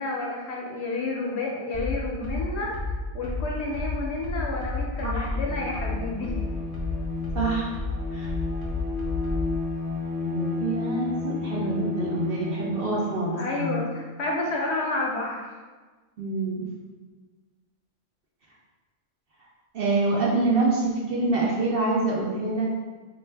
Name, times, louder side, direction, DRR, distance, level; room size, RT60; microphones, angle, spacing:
voice 1, 0.0-2.7 3.1-6.3 13.4-15.5, left 2 dB, 65° left, -2 dB, 0.8 m, -30 dB
sound 1, 1.7-9.6, left 3 dB, 30° left, 0.4 m, -30 dB
Bowed string instrument, 5.3-13.8, left 3 dB, 20° right, 1.2 m, -33 dB
voice 2, 7.3-7.8 8.1-8.3 10.2-13.8 16.2-16.6 19.7-22.7, right 2 dB, 55° right, -4 dB, 0.7 m, -26 dB
3.4 x 2.5 x 3.3 m, 1.4 s
omnidirectional pair, 1.4 m